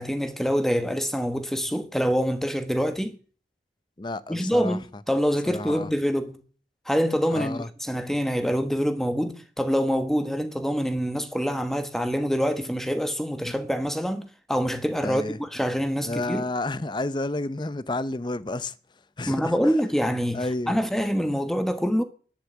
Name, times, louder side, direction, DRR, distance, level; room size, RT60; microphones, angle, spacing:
voice 1, 0.0-3.2 4.3-6.4 6.9-16.5 19.3-22.0, equal, ahead, 1.2 m, -25 dB
voice 2, 4.0-4.8 5.5-5.9 7.3-7.7 13.4-13.5 15.0-15.4 16.0-18.7 19.2-19.5 20.3-20.8, left 2 dB, 25° left, 0.6 m, -30 dB
11.5 x 10.5 x 7.9 m
head